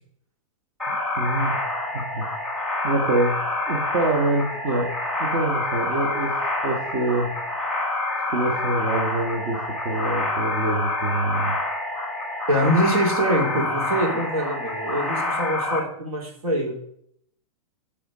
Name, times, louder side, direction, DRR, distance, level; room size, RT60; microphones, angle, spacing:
sound 1, 0.8-15.8, left 2 dB, ahead, 2.0 m, -27 dB
voice 1, 0.9-1.6 1.9-2.3 2.8-3.4 3.7-4.9 5.2-6.3 6.6-7.3 8.3-11.5, right 2 dB, 40° right, 1 dB, 1.3 m, -25 dB
voice 2, 12.5-16.7, equal, 80° right, -1 dB, 3.7 m, -24 dB
10.5 x 5.1 x 5.4 m, 0.70 s
hypercardioid pair, 155°, 18 cm